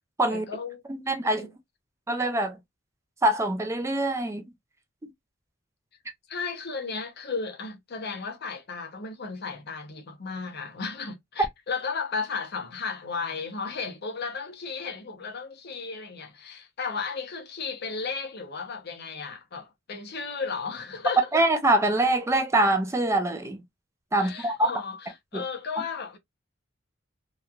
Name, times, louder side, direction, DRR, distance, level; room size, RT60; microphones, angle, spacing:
voice 1, 0.3-0.8 1.2-1.5 6.3-21.3 24.2-26.2, left 5 dB, 50° left, 0.7 m, -34 dB
voice 2, 0.9-1.4 2.1-2.6 3.2-4.4 21.3-23.6 24.1-24.7 25.3-25.4, right 1 dB, 15° right, 0.4 m, -24 dB
3.0 x 2.2 x 2.3 m
head